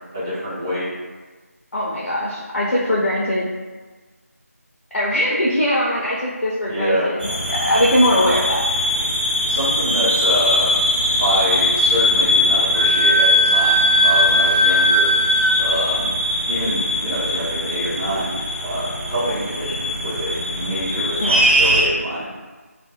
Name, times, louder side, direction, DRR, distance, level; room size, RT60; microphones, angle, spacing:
voice 1, 0.1-0.9 6.7-7.1 9.5-10.7 11.2-15.1 15.6-16.1 16.5-18.4 18.6-22.3, equal, 10° right, -13 dB, 0.5 m, -25 dB
voice 2, 1.7-3.5 4.9-8.6 21.2-21.4, equal, 60° left, -6 dB, 0.4 m, -21 dB
sound 1, 7.2-21.8, left 2 dB, 40° right, 0.9 m, -20 dB
Wind instrument woodwind instrument, 12.7-15.5, right 3 dB, 75° right, 0.8 m, -19 dB
2.3 x 2.0 x 2.8 m, 1.4 s
figure-of-eight pair, 165°, 8 cm